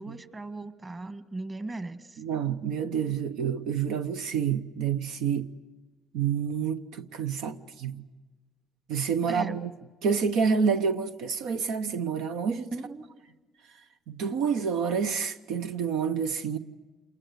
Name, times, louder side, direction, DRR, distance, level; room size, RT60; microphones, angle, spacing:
voice 1, 0.0-2.2 9.3-9.6 12.7-13.1, right 2 dB, 25° right, 1.8 m, -38 dB
voice 2, 2.2-5.5 6.1-8.0 8.9-9.7 10.0-12.7 14.1-16.6, right 6 dB, 85° right, 1.0 m, -28 dB
28.0 x 21.5 x 8.1 m
cardioid pair, 100°, 0 cm